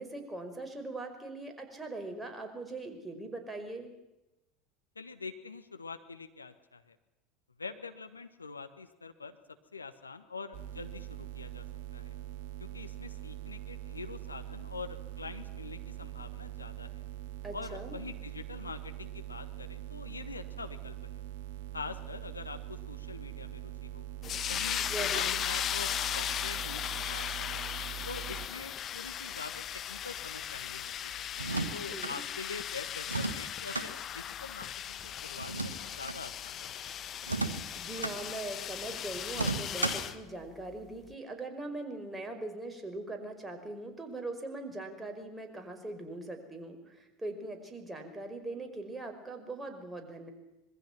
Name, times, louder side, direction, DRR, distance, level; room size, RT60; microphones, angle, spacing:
voice 1, 0.0-3.9 17.4-18.0 24.8-25.3 31.8-32.2 37.7-50.3, right 2 dB, 10° right, 4 dB, 5.1 m, -41 dB
voice 2, 4.9-7.0 7.6-9.4 9.7-11.6 11.9-12.2 12.6-17.0 17.5-21.2 21.7-24.1 24.5-27.6 28.0-31.3 31.7-37.0, left 4 dB, 85° left, 8 dB, 1.5 m, -45 dB
sound 1, 10.5-28.5, right 14 dB, 60° right, 1.5 m, -43 dB
sound 2, 24.2-40.2, left 10 dB, 40° left, 1.2 m, -37 dB
sound 3, 31.3-32.1 33.0-33.9 35.4-36.2 37.2-38.2 39.3-40.1, right 3 dB, 85° right, 1.5 m, -34 dB
25.5 x 21.5 x 6.1 m, 0.95 s
figure-of-eight pair, 75°, 0 cm